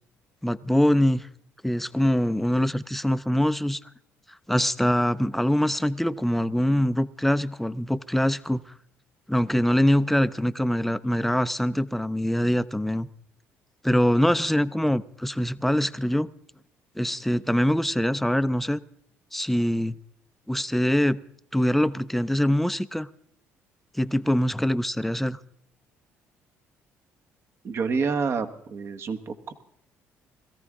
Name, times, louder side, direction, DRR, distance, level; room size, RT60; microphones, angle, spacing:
voice 1, 0.4-1.3 1.6-3.8 4.5-8.6 9.3-13.1 13.8-16.3 17.0-18.8 19.3-20.0 20.5-21.2 21.5-23.1 24.0-25.4, equal, 5° left, 0.6 m, -23 dB
voice 2, 27.6-29.5, right 5 dB, 50° right, 1.3 m, -28 dB
21.0 x 14.0 x 3.7 m
supercardioid pair, 75°, 6 cm